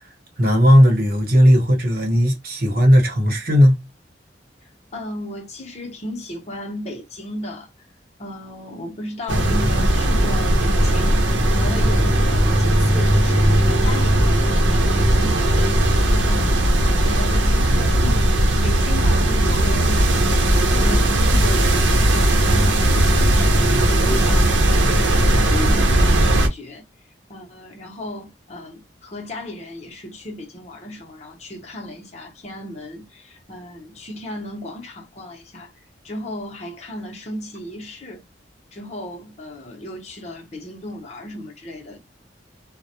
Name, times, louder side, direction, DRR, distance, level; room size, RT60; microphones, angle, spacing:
voice 1, 0.4-3.8, equal, 50° right, 0.9 m, -15 dB
voice 2, 4.9-7.7 8.2-26.8 27.3-35.7 36.0-38.2 38.7-42.0, left 1 dB, 35° left, 0.7 m, -35 dB
sound 1, 9.3-26.5, right 1 dB, 85° right, 0.7 m, -17 dB
2.2 x 2.1 x 2.8 m
head